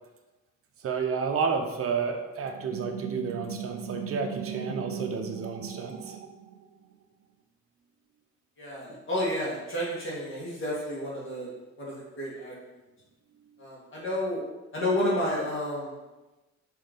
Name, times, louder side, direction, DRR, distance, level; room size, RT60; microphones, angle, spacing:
voice 1, 0.8-6.2, right 5 dB, 50° right, 4 dB, 0.9 m, -31 dB
sound 1, 2.5-6.9, right 7 dB, 70° right, 0.5 m, -38 dB
voice 2, 8.6-12.5 13.6-14.4 14.7-15.9, left 1 dB, 45° left, -6 dB, 1.9 m, -31 dB
6.3 x 3.5 x 5.2 m, 1.1 s
cardioid pair, 135°, 30 cm